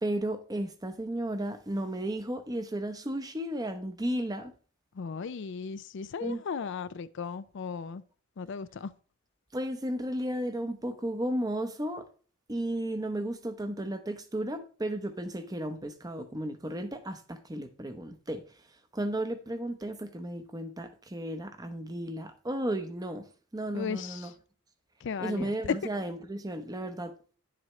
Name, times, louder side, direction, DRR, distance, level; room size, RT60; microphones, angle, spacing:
voice 1, 0.0-4.5 6.2-6.4 9.5-12.0 12.5-18.4 18.9-23.2 23.5-24.3 25.2-27.1, right 1 dB, 20° right, 0.8 m, -34 dB
voice 2, 4.9-8.0 8.4-8.9 23.7-24.3 25.0-25.8, left 6 dB, 60° left, 0.4 m, -35 dB
10.0 x 7.6 x 3.1 m
head